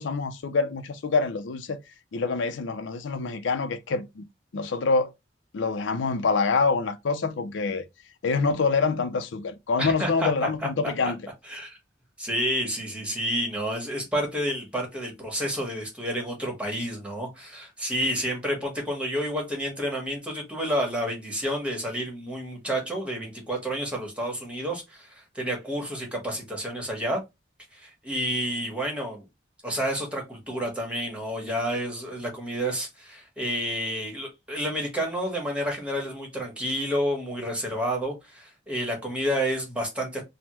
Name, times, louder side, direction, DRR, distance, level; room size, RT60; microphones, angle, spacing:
voice 1, 0.0-1.8 2.1-4.2 4.5-5.1 5.5-7.8 8.2-11.2, left 4 dB, 85° left, 0.5 m, -26 dB
voice 2, 9.8-10.3 10.6-10.7 11.4-11.8 12.2-27.2 27.7-29.2 29.6-40.2, equal, 5° right, 1.0 m, -30 dB
3.3 x 2.1 x 2.9 m
head